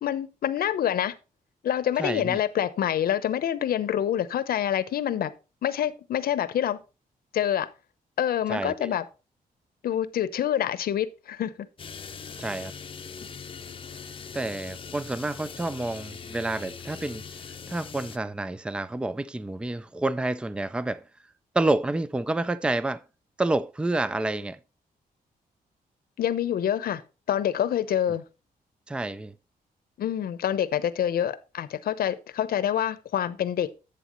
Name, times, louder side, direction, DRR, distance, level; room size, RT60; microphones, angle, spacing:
voice 1, 0.0-1.1 1.6-5.3 5.6-6.8 7.3-7.7 8.2-9.0 9.8-11.5 26.2-27.0 27.3-28.2 30.0-33.7, left 10 dB, 75° left, 0.9 m, -26 dB
voice 2, 2.0-2.4 8.5-8.9 12.4-12.7 14.3-17.2 17.7-21.0 21.5-23.0 23.4-24.6 28.9-29.3, right 2 dB, 5° right, 0.4 m, -29 dB
sound 1, 11.8-18.2, left 6 dB, 35° left, 0.7 m, -41 dB
11.5 x 8.0 x 3.0 m
wide cardioid pair, 135°, 15 cm